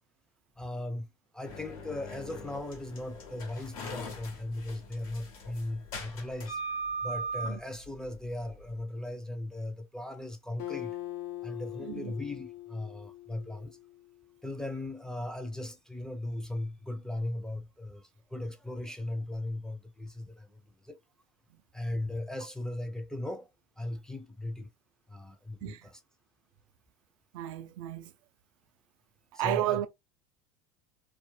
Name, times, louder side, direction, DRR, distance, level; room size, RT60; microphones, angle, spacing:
voice 1, 0.6-6.6 7.0-11.0 11.4-13.8 14.4-21.0 21.7-23.5 23.8-24.7 25.1-26.0 29.4-29.9, left 1 dB, 5° left, 0.4 m, -38 dB
sound 1, 1.4-8.8, right 2 dB, 85° left, 1.0 m, -40 dB
Acoustic guitar, 10.6-14.2, left 15 dB, 65° left, 0.6 m, -42 dB
voice 2, 11.8-12.1 25.6-25.9 27.3-28.1 29.3-29.9, right 13 dB, 70° right, 0.4 m, -32 dB
2.3 x 2.0 x 3.0 m
hypercardioid pair, 95°, 17 cm